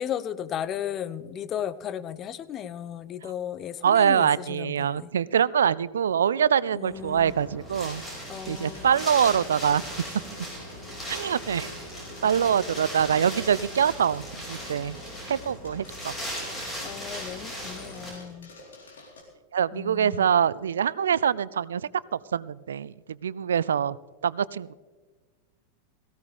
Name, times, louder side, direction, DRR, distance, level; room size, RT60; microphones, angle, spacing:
voice 1, 0.0-5.1 6.7-7.3 8.3-8.9 16.8-18.5 19.7-20.3, left 9 dB, 30° left, 15 dB, 0.6 m, -35 dB
voice 2, 3.8-8.0 8.5-10.2 11.1-11.7 12.2-15.0 15.3-16.1 19.5-24.0 24.2-24.7, right 8 dB, 65° right, 21 dB, 0.3 m, -24 dB
Wind, 6.9-18.1, equal, 15° left, 5.4 m, -38 dB
sound 1, 7.7-19.2, left 1 dB, 65° left, 3.9 m, -49 dB
18.0 x 16.0 x 3.5 m, 1.4 s
figure-of-eight pair, 90°, 0 cm